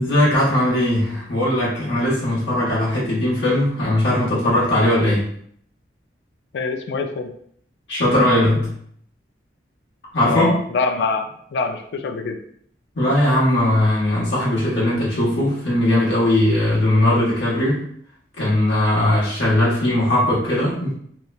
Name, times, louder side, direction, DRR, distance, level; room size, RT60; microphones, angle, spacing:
voice 1, 0.0-5.3 7.9-8.7 10.1-10.5 12.9-17.8 18.4-20.9, left 1 dB, 90° left, -7 dB, 1.1 m, -19 dB
voice 2, 6.5-7.3 10.3-12.4, left 4 dB, 70° left, 6 dB, 0.3 m, -24 dB
2.9 x 2.1 x 2.3 m, 0.64 s
head